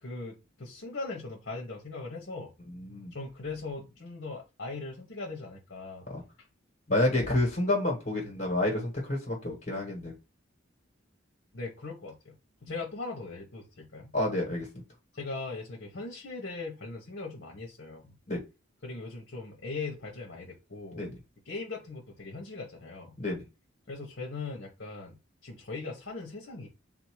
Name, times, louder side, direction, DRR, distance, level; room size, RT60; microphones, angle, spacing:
voice 1, 0.0-2.5 3.1-6.1 7.1-7.3 11.5-12.3 12.6-14.1 15.1-18.1 18.8-21.0 21.4-23.2 23.9-26.7, left 3 dB, 60° left, 0.9 m, -40 dB
voice 2, 2.7-3.1 6.1-6.2 6.9-10.1 14.1-14.8 18.3-18.4 20.9-21.1 23.2-23.4, left 1 dB, 40° left, 1.2 m, -29 dB
3.7 x 2.6 x 4.6 m
head